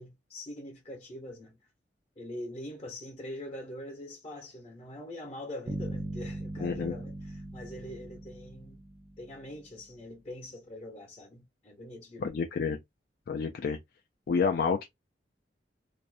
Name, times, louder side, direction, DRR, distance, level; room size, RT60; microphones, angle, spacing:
voice 1, 0.0-1.6 2.2-8.8 9.2-12.3, left 1 dB, 35° left, 0.7 m, -43 dB
sound 1, 5.7-9.6, right 1 dB, 35° right, 0.4 m, -40 dB
voice 2, 6.6-6.9 12.2-12.8 13.3-13.8 14.3-14.8, left 5 dB, 60° left, 0.3 m, -29 dB
2.5 x 2.0 x 2.4 m
head